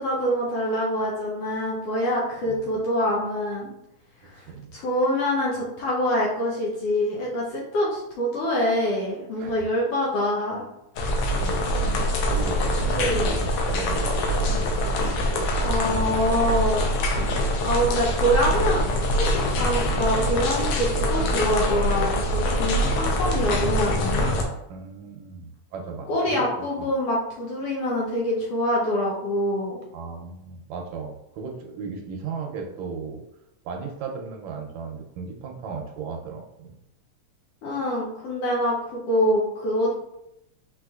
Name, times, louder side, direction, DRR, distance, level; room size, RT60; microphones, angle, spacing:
voice 1, 0.0-3.7 4.2-4.4 4.7-10.6 13.0-13.3 15.5-16.9 17.6-18.8 19.1-24.3 26.1-29.8 37.6-39.9, equal, 70° left, -4 dB, 1.5 m, -25 dB
voice 2, 4.2-4.7 9.4-9.7 11.4-11.7 12.3-14.6 24.7-26.5 26.8-26.9 29.9-33.2 33.7-36.7, right 5 dB, 80° right, 2 dB, 1.8 m, -36 dB
sound 1, 11.0-24.4, equal, 90° left, 1.2 m, -24 dB
4.6 x 4.3 x 2.3 m, 0.85 s
omnidirectional pair, 3.3 m